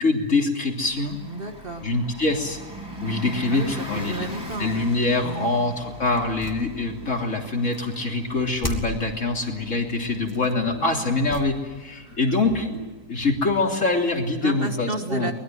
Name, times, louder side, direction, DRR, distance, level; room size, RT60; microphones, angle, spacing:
voice 1, 0.0-1.2 1.8-2.6 3.0-4.3 4.6-12.7 13.1-15.3, left 3 dB, 50° left, 1 dB, 3.6 m, -24 dB
Bus, 0.7-13.0, right 1 dB, 15° right, 4.1 m, -41 dB
voice 2, 1.3-1.9 3.5-4.9 5.2-5.6 9.4-9.5 11.9-12.2 14.4-15.3, right 2 dB, 35° right, 4 dB, 2.1 m, -32 dB
sound 1, 3.2-5.1 5.7-7.8 8.3-8.6 9.2-11.3 11.6-14.5, left 1 dB, 85° left, 5.0 m, -44 dB
sound 2, 3.4-3.6 4.3-5.7 6.2-7.3 7.7-8.0 8.6-9.1 10.1-10.6 11.2-11.8 12.1-13.4, equal, 10° left, 2.5 m, -37 dB
24.0 x 20.5 x 9.3 m, 1.2 s
omnidirectional pair, 1.6 m